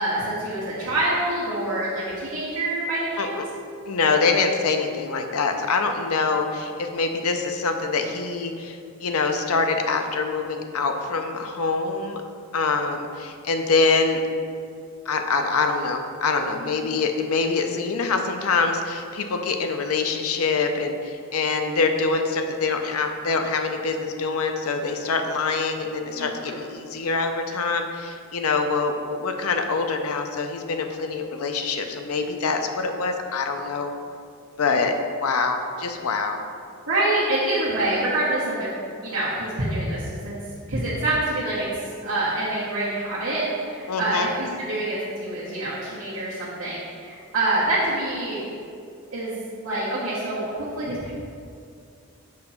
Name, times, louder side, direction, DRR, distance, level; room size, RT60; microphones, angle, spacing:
voice 1, 0.0-3.4 5.6-5.7 16.6-16.9 26.2-26.6 36.9-38.7 39.0-40.4 40.7-41.7 42.0-48.4 49.1-51.1, right 1 dB, 65° right, -10 dB, 1.3 m, -26 dB
voice 2, 3.9-12.2 12.5-14.2 15.1-33.9 34.6-34.9 35.2-36.4 43.9-44.3, left 4 dB, 75° left, 5 dB, 0.5 m, -25 dB
6.3 x 2.9 x 5.6 m, 2.4 s
head